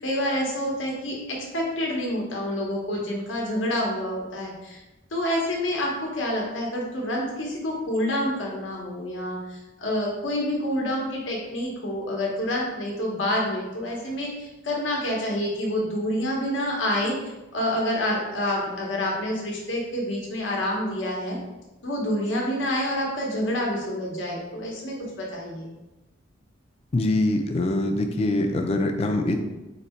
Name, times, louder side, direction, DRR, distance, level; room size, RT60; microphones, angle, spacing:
voice 1, 0.0-4.8 5.1-21.4 21.8-25.7, left 1 dB, 75° left, -2 dB, 1.0 m, -28 dB
voice 2, 26.9-29.3, left 2 dB, 30° left, 5 dB, 0.4 m, -23 dB
4.0 x 2.7 x 4.3 m, 1.0 s
head